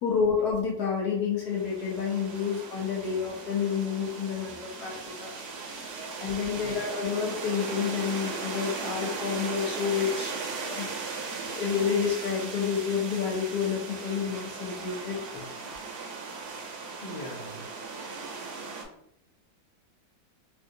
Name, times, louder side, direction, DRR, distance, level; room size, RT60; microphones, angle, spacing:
voice 1, 0.0-5.3 6.2-10.9 11.4-15.4, left 6 dB, 65° left, -2 dB, 1.1 m, -29 dB
sound 1, 1.4-18.8, right 4 dB, 70° right, 1.1 m, -38 dB
voice 2, 17.0-17.7, left 1 dB, 50° left, -3 dB, 0.7 m, -42 dB
3.4 x 2.5 x 2.6 m, 0.72 s
omnidirectional pair, 2.1 m